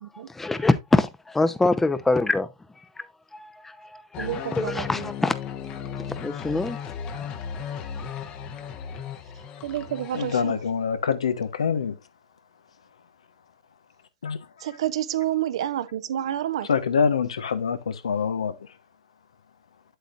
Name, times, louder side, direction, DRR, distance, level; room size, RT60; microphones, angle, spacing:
voice 1, 0.3-2.5 3.0-3.1 3.3-5.3 6.0-7.4 7.8-8.2, left 2 dB, 10° left, 0.7 m, -25 dB
sound 1, 4.1-10.4, left 7 dB, 35° left, 1.1 m, -36 dB
voice 2, 4.2-5.1 9.6-10.6 14.6-16.7, right 12 dB, 70° right, 0.7 m, -29 dB
voice 3, 10.1-12.0 14.2-14.4 16.7-18.5, left 6 dB, 85° left, 1.1 m, -25 dB
8.3 x 8.0 x 2.5 m
hypercardioid pair, 115°, 3 cm